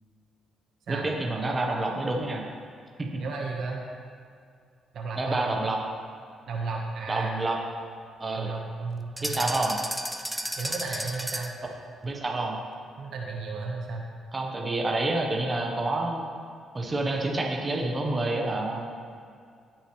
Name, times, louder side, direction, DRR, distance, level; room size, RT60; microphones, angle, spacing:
voice 1, 0.9-2.4 3.0-3.2 5.2-5.8 7.1-7.6 8.2-8.5 9.2-9.7 12.0-12.6 14.3-16.3 16.7-18.9, right 2 dB, 25° right, 0 dB, 1.4 m, -28 dB
voice 2, 3.2-3.8 4.9-5.4 6.5-7.4 8.3-9.6 10.6-11.6 13.0-14.1, right 3 dB, 70° right, -1 dB, 1.6 m, -34 dB
sound 1, 9.2-11.6, equal, 5° right, 0.6 m, -33 dB
17.5 x 6.2 x 3.4 m, 2.3 s
cardioid pair, 90°, 0 cm